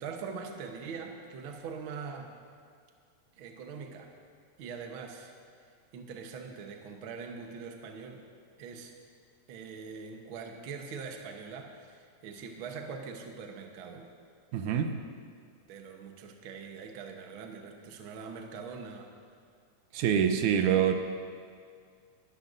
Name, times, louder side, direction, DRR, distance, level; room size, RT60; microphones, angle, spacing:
voice 1, 0.0-2.3 3.4-4.1 4.6-5.3 5.9-8.2 8.6-8.9 9.5-14.1 14.9-15.1 15.7-19.1, right 5 dB, 60° right, 3 dB, 1.4 m, -42 dB
voice 2, 14.5-15.0 19.9-20.9, right 8 dB, 85° right, 7 dB, 2.2 m, -25 dB
22.0 x 12.5 x 2.6 m, 2.2 s
omnidirectional pair, 3.5 m